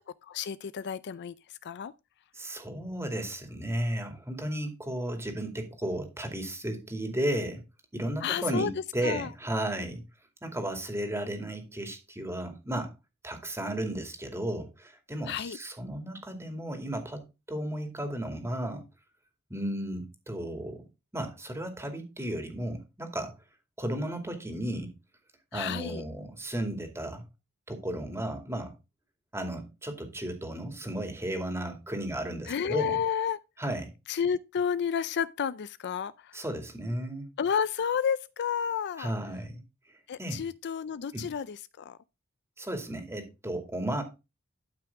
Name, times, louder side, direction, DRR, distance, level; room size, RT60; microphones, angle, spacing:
voice 1, 0.2-1.9 8.2-8.7 9.0-9.3 15.3-15.6 25.5-26.0 32.5-33.4 34.1-36.4 37.4-39.1 40.1-42.0, left 7 dB, 50° left, 0.4 m, -31 dB
voice 2, 2.4-7.6 7.9-10.0 10.4-12.9 13.2-18.8 19.5-20.8 21.1-23.3 23.8-24.9 25.5-27.2 27.7-28.7 29.3-33.0 33.6-33.9 36.3-37.3 39.0-39.6 40.2-40.4 41.1-41.3 42.6-44.0, right 1 dB, 10° right, 2.4 m, -34 dB
12.5 x 5.9 x 3.5 m
head